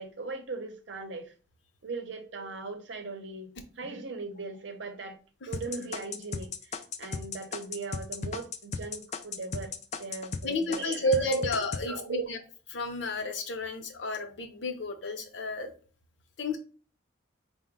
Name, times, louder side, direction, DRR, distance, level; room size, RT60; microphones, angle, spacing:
voice 1, 0.0-1.3 1.8-5.2 5.5-11.5 11.8-12.3, right 3 dB, 65° right, 0.7 m, -39 dB
sound 1, 5.5-10.4 10.7-11.8, left 5 dB, 35° left, 0.3 m, -35 dB
voice 2, 10.4-12.4 12.7-15.7 16.4-16.6, left 1 dB, 65° left, 0.7 m, -31 dB
4.7 x 2.1 x 3.5 m
head